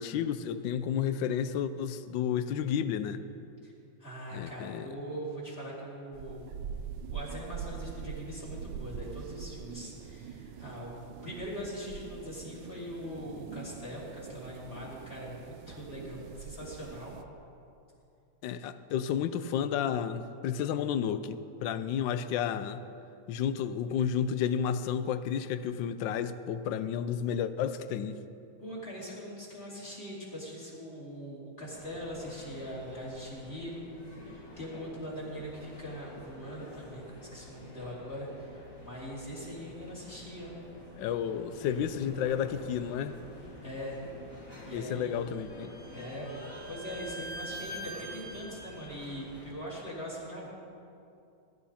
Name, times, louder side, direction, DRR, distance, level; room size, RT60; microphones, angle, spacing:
voice 1, 0.0-3.2 4.3-4.9 18.4-22.8 23.3-28.2 41.0-43.2 44.7-45.7, left 8 dB, 75° left, 12 dB, 1.3 m, -31 dB
voice 2, 4.0-6.4 7.1-17.1 28.6-33.8 34.3-40.6 43.6-44.0 44.6-45.2 45.9-46.4 46.7-50.5, equal, 30° left, -7 dB, 4.2 m, -41 dB
sound 1, 6.1-17.2, right 7 dB, 70° right, 1.3 m, -43 dB
sound 2, 31.7-49.5, left 1 dB, 55° left, 3.8 m, -49 dB
Bowed string instrument, 45.1-48.9, right 1 dB, 10° left, 1.6 m, -44 dB
21.0 x 12.5 x 4.3 m, 2.6 s
omnidirectional pair, 2.2 m